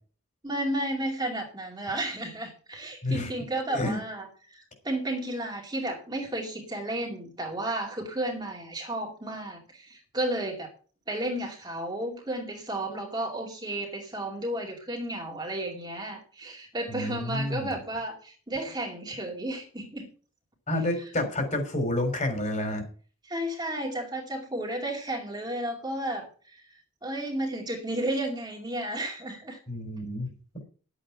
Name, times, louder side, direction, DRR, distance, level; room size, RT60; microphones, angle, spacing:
voice 1, 0.4-10.7 11.1-20.1 23.2-26.6 27.0-29.6, right 1 dB, 20° right, 0 dB, 2.4 m, -33 dB
voice 2, 3.7-4.0 16.9-17.8 20.7-22.9 29.7-30.3, left 1 dB, 35° left, 6 dB, 3.7 m, -29 dB
11.5 x 8.4 x 5.7 m, 0.41 s
head